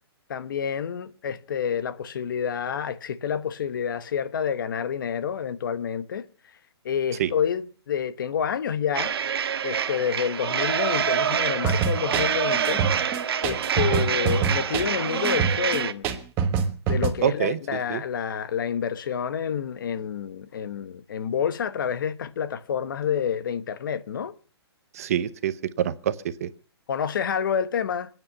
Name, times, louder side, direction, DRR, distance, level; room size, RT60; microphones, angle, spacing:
voice 1, 0.3-6.2 6.8-9.1 9.6-12.8 13.4-16.1 16.9-24.3 26.9-28.1, left 7 dB, 50° left, 1.1 m, -28 dB
sound 1, 8.9-15.9, right 8 dB, 65° right, 1.4 m, -26 dB
sound 2, 11.6-17.1, right 6 dB, 15° right, 1.4 m, -25 dB
voice 2, 17.2-17.6 17.9-18.0 24.9-26.2 26.4-26.5, right 10 dB, 35° right, 0.8 m, -26 dB
28.0 x 9.4 x 5.5 m
hypercardioid pair, 170°, 14 cm